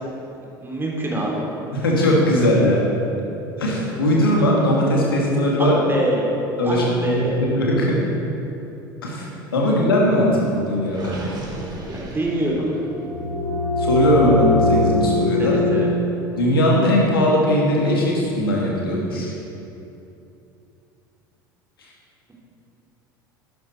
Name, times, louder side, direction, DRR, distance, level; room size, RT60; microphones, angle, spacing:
voice 1, 0.6-1.3 5.6-6.3 6.6-7.3 11.9-12.7 15.4-15.9, right 1 dB, 20° right, -3 dB, 3.2 m, -25 dB
voice 2, 1.7-2.8 3.6-5.8 6.6-8.0 9.0-11.2 13.8-15.6 16.4-19.3, equal, 80° left, -3 dB, 2.4 m, -19 dB
Gurgling, 10.9-13.0, right 1 dB, 35° right, 3.0 m, -36 dB
sound 1, 12.8-18.3, left 2 dB, 85° right, 2.5 m, -23 dB
12.0 x 10.5 x 4.5 m, 2.8 s
hypercardioid pair, 70°, 12 cm